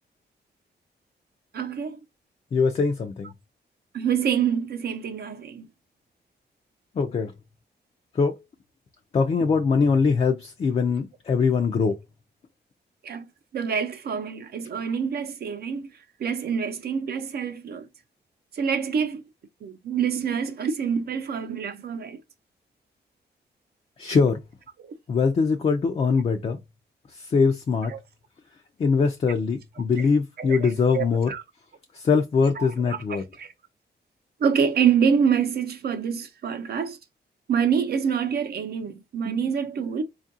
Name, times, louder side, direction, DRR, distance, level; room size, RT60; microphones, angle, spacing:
voice 1, 1.5-2.0 3.9-5.7 13.0-13.3 13.5-15.9 16.2-17.9 18.5-19.2 19.6-22.2 24.8-25.0 27.9-28.0 30.4-30.7 30.9-31.4 32.6-33.5 34.4-37.0 37.5-40.0, right 7 dB, 65° right, 0.7 m, -26 dB
voice 2, 2.5-3.3 6.9-7.3 8.1-8.4 9.1-12.0 24.0-24.4 25.1-26.6 27.1-27.9 28.8-31.3 31.9-33.2, left 5 dB, 35° left, 0.4 m, -22 dB
4.4 x 2.4 x 2.6 m
wide cardioid pair, 155°, 18 cm